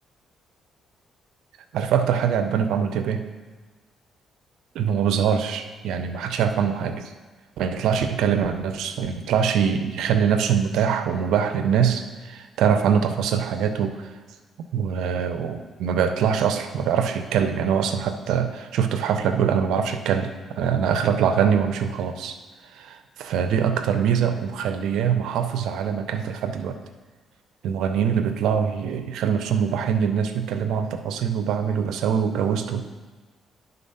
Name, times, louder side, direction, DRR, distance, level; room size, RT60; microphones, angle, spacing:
voice 1, 1.7-3.2 4.7-7.1 7.6-14.1 14.7-22.4 22.7-26.8 27.6-32.8, right 7 dB, 85° right, 8 dB, 0.5 m, -23 dB
10.5 x 4.0 x 5.5 m, 1.3 s
cardioid pair, 90°, 0 cm